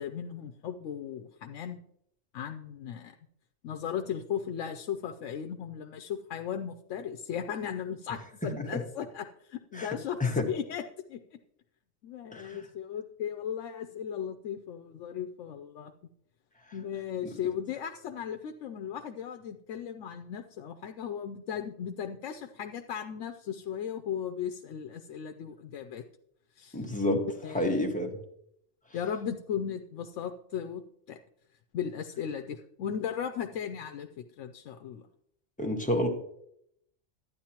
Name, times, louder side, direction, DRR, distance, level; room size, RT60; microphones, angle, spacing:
voice 1, 0.0-1.8 2.3-3.1 3.6-10.8 11.1-11.2 12.0-15.9 16.7-26.0 26.6-26.8 27.1-27.8 28.9-30.8 31.1-31.2 31.7-35.1, left 8 dB, 85° left, 7 dB, 1.0 m, -36 dB
voice 2, 9.7-10.5 12.3-12.7 26.7-27.2 27.5-28.1 35.6-36.1, left 1 dB, 5° left, 1 dB, 1.4 m, -29 dB
12.0 x 9.5 x 2.9 m, 0.73 s
omnidirectional pair, 1.2 m